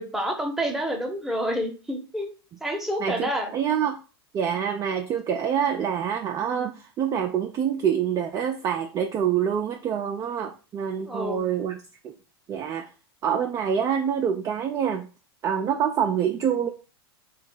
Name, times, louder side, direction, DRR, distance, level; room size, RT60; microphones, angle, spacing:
voice 1, 0.0-2.3 2.6-3.5 11.1-11.4, equal, ahead, 2 dB, 0.8 m, -28 dB
voice 2, 3.0-4.0 4.3-11.8 12.0-12.2 12.5-12.9 13.2-15.1 15.4-16.7, right 8 dB, 25° right, 4 dB, 0.4 m, -26 dB
3.5 x 2.3 x 3.9 m, 0.34 s
figure-of-eight pair, 95°, 13 cm